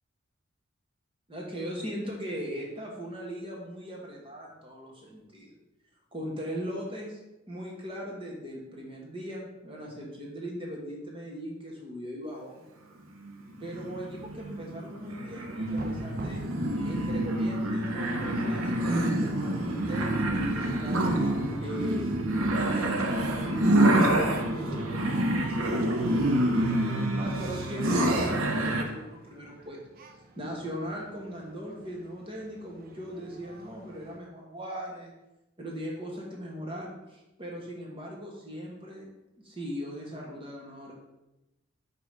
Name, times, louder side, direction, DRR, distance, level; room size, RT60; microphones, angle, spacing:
voice 1, 1.3-5.6 6.1-7.2 7.5-12.6 13.6-16.4 16.8-21.2 21.6-22.1 22.5-29.8 30.4-35.1 35.6-39.1 39.4-40.9, equal, 25° right, -2 dB, 1.4 m, -39 dB
sound 1, 13.2-28.8, right 1 dB, 80° right, 0.8 m, -27 dB
sound 2, 15.6-34.2, right 1 dB, 45° right, 0.5 m, -41 dB
5.1 x 4.8 x 5.1 m, 0.95 s
head